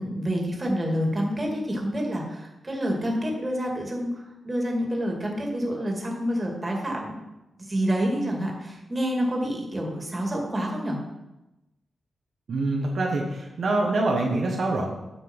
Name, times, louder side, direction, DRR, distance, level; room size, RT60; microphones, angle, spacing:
voice 1, 0.0-7.2 7.6-11.0, equal, 25° right, 0 dB, 2.5 m, -28 dB
voice 2, 12.5-14.9, right 2 dB, 65° right, -1 dB, 1.5 m, -25 dB
9.0 x 6.0 x 5.5 m, 0.97 s
cardioid pair, 80°, 0 cm